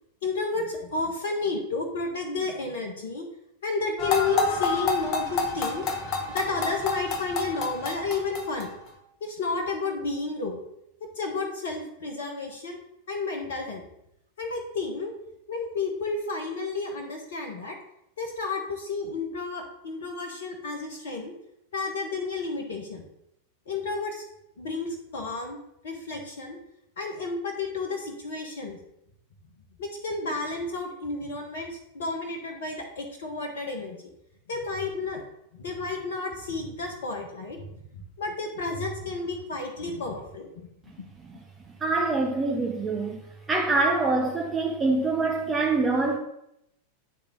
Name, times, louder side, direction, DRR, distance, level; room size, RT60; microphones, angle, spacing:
voice 1, 0.2-3.2 3.6-5.8 6.3-8.7 9.2-10.6 11.2-12.8 13.1-13.8 14.4-15.1 15.5-17.7 18.2-21.3 21.7-23.0 23.7-24.2 24.6-25.6 25.8-26.6 27.0-28.8 29.8-34.0 34.5-35.2 35.5-37.6 38.2-40.5, left 3 dB, 60° left, 0.9 m, -31 dB
sound 1, 4.0-8.9, left 4 dB, 35° left, 0.9 m, -28 dB
voice 2, 41.7-43.2 43.5-46.2, right 3 dB, 15° right, 0.7 m, -25 dB
9.4 x 3.4 x 3.8 m
figure-of-eight pair, 90°, 0 cm